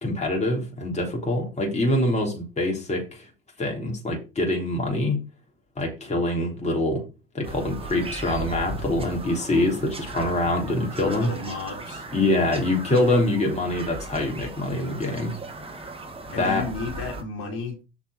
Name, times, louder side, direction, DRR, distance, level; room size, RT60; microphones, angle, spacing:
voice 1, 0.0-3.3 3.6-5.2 5.8-7.0 7.3-11.3 12.1-15.3 16.3-16.6, left 1 dB, 25° left, 3.6 m, -24 dB
Bird vocalization bird call bird song, 7.4-17.2, right 2 dB, 20° right, 2.2 m, -37 dB
voice 2, 10.1-10.5 11.0-12.1 16.3-17.8, left 3 dB, 50° left, 4.0 m, -33 dB
7.0 x 5.9 x 5.8 m
figure-of-eight pair, 60°, 30 cm